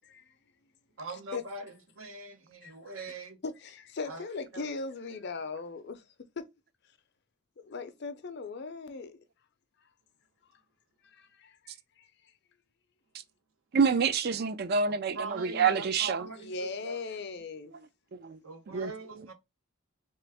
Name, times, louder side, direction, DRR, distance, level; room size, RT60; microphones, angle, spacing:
voice 1, 0.0-0.3 1.3-1.4 2.6-2.7 3.0-3.1 3.4-6.0 6.4-6.5 7.6-9.2 11.0-12.1 16.4-17.7, left 4 dB, 55° left, 0.5 m, -39 dB
voice 2, 1.0-3.4 4.0-4.2 4.5-4.6 15.1-17.0 18.4-19.3, right 3 dB, 85° right, 1.0 m, -42 dB
voice 3, 13.7-16.3 18.1-18.4 18.7-18.9, right 5 dB, 50° right, 0.4 m, -27 dB
3.3 x 3.0 x 3.4 m
head